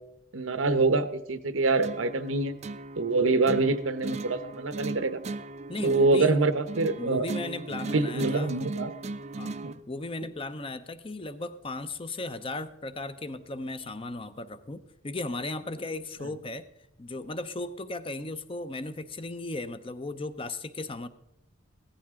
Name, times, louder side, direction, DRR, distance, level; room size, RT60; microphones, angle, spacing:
voice 1, 0.3-2.5 3.0-5.2 5.8-7.3 7.9-8.9 9.6-9.7, right 3 dB, 90° right, 12 dB, 0.9 m, -25 dB
sound 1, 1.8-9.8, right 3 dB, 35° right, 0.4 m, -38 dB
voice 2, 5.7-6.4 6.9-8.6 9.4-9.6 9.9-16.7 17.0-21.1, left 2 dB, 25° left, 12 dB, 0.6 m, -36 dB
16.0 x 14.0 x 3.7 m, 0.82 s
head